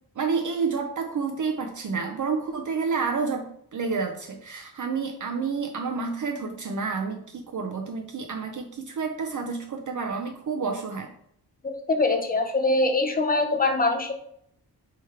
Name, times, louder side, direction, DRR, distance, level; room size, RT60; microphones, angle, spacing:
voice 1, 0.2-11.1, right 5 dB, 50° right, 3 dB, 0.5 m, -29 dB
voice 2, 11.6-14.1, left 2 dB, 20° left, 4 dB, 0.5 m, -23 dB
3.5 x 3.2 x 4.4 m, 0.69 s
wide cardioid pair, 170°, 41 cm